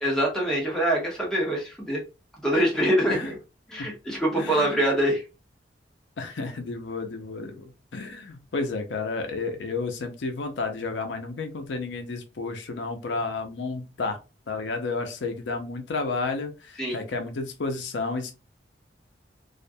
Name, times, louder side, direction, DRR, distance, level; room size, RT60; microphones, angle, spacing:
voice 1, 0.0-2.0 2.4-3.4 3.7-5.2 16.8-17.0, right 1 dB, 5° left, -2 dB, 0.8 m, -24 dB
voice 2, 4.4-4.7 6.2-14.2 14.5-18.3, left 3 dB, 85° left, 6 dB, 0.5 m, -31 dB
2.4 x 2.2 x 2.6 m, 0.29 s
head